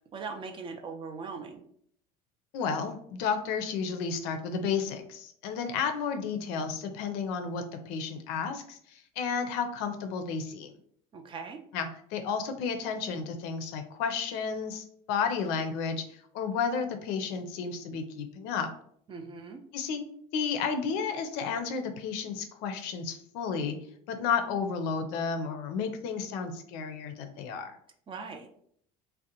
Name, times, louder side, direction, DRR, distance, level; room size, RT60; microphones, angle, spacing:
voice 1, 0.1-1.6 11.1-11.6 19.1-19.6 28.1-28.5, right 4 dB, 30° right, 4 dB, 0.4 m, -40 dB
voice 2, 2.5-10.7 11.7-18.7 19.7-20.0 20.3-23.8 24.1-27.7, left 6 dB, 70° left, 6 dB, 0.4 m, -32 dB
2.5 x 2.1 x 2.8 m, 0.65 s
supercardioid pair, 90°, 17 cm